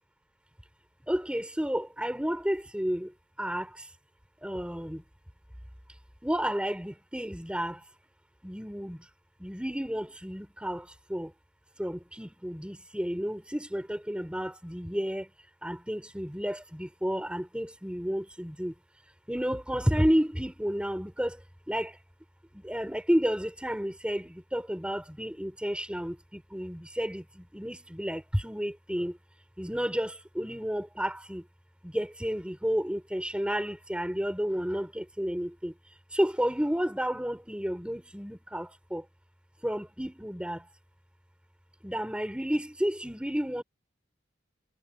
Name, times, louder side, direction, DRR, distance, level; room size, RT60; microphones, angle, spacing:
voice 1, 1.1-3.9 4.4-5.0 6.2-7.8 8.4-9.1 9.4-11.3 11.8-15.3 15.6-18.7 19.3-21.4 21.7-22.0 22.5-29.2 29.6-31.4 31.8-35.7 36.1-39.0 39.6-40.7 41.8-43.6, equal, 5° right, 3.7 m, -31 dB
head